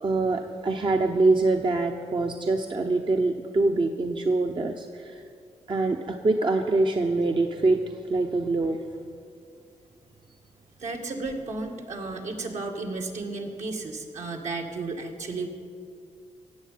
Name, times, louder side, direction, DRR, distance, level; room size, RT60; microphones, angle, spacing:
voice 1, 0.0-5.2 5.7-8.8, right 3 dB, 40° right, 4 dB, 0.9 m, -24 dB
voice 2, 10.8-15.5, right 3 dB, 65° right, 2 dB, 2.2 m, -33 dB
17.0 x 7.5 x 9.4 m, 2.3 s
cardioid pair, 70°, 13 cm